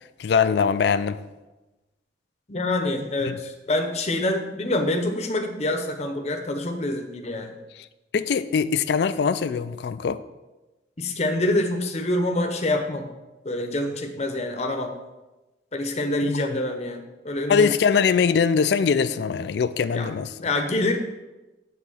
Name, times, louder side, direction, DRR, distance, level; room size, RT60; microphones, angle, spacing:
voice 1, 0.2-1.2 3.3-3.4 8.1-10.2 16.2-16.5 17.5-20.3, left 6 dB, 65° left, 0.3 m, -22 dB
voice 2, 2.5-7.5 11.0-13.1 13.4-14.9 15.7-17.7 19.9-20.1 20.4-21.0, left 1 dB, 35° left, 0.8 m, -26 dB
7.5 x 3.9 x 6.2 m
head